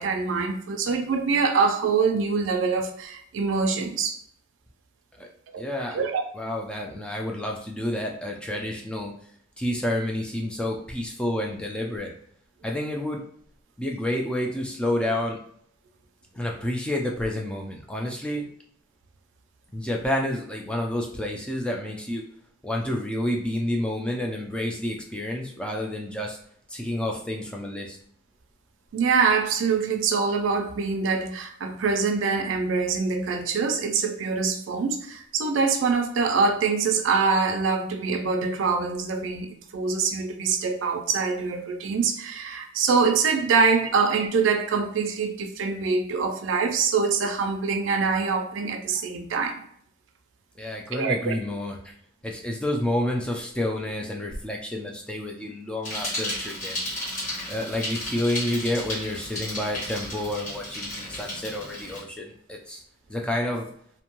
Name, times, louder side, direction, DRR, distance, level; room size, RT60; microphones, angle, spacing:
voice 1, 0.0-4.2 5.5-5.6 5.9-6.2 28.9-49.6 50.9-51.4, right 5 dB, 85° right, 5 dB, 0.4 m, -24 dB
voice 2, 5.6-6.1 6.3-9.1 9.6-12.1 12.6-13.2 13.8-15.4 16.3-18.5 19.7-22.2 22.6-26.4 26.7-28.0 50.6-51.9 52.2-56.8 57.5-62.8 63.1-63.7, left 1 dB, 5° left, 0 dB, 0.4 m, -29 dB
Bicycle, 55.8-62.0, left 1 dB, 40° left, 1.4 m, -33 dB
2.6 x 2.2 x 2.9 m, 0.65 s
head